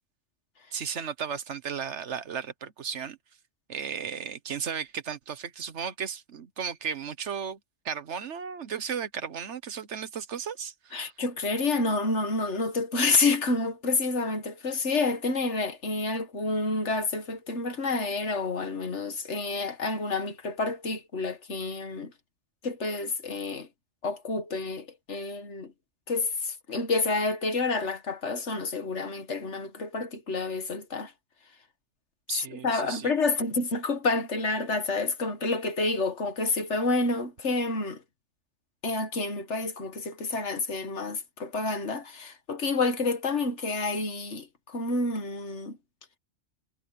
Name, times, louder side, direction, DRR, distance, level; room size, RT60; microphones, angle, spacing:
voice 1, 0.7-3.2 3.7-7.6 7.8-11.1 32.3-33.1, right 7 dB, 75° right, 1.4 m, -35 dB
voice 2, 10.9-22.1 22.6-23.7 24.0-25.7 26.1-31.1 32.5-38.0 38.8-45.8, left 3 dB, 75° left, 2.0 m, -29 dB
omnidirectional pair, 1.2 m